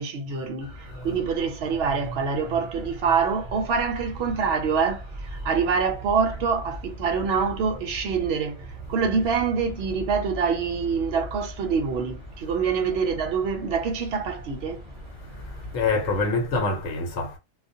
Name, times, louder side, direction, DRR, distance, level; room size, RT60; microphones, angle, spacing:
voice 1, 0.0-8.6 8.9-14.8, right 5 dB, 65° right, 0.8 m, -25 dB
sound 1, 0.6-16.3, equal, 40° right, 0.4 m, -40 dB
voice 2, 0.9-1.2 1.7-1.8 2.1-2.2 3.0-3.2 15.3-17.4, left 3 dB, 80° left, 1.1 m, -28 dB
2.4 x 2.1 x 2.6 m
omnidirectional pair, 1.3 m